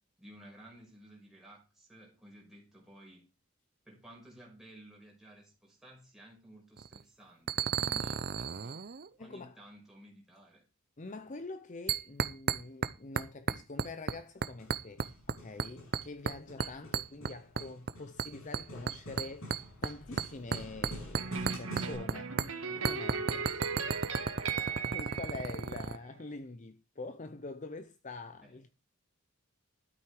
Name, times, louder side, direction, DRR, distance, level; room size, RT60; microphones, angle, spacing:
voice 1, 0.2-3.2 3.9-8.9 9.2-10.6 28.4-28.6, right 1 dB, ahead, 5.6 m, -55 dB
sound 1, 6.8-7.0 7.5-9.1 11.9-12.9 13.2-14.2 14.4-15.3 15.6-16.4 16.6-17.9 18.2-22.1 22.4-22.5 22.8-26.0, right 5 dB, 45° right, 0.6 m, -33 dB
voice 2, 9.2-9.5 11.0-22.5 22.8-24.1 24.9-28.7, left 3 dB, 35° left, 0.6 m, -45 dB
Hammer, 14.4-21.9, equal, 70° left, 6.6 m, -49 dB
sound 2, 21.2-26.2, right 5 dB, 70° right, 1.8 m, -38 dB
13.0 x 8.8 x 4.8 m
head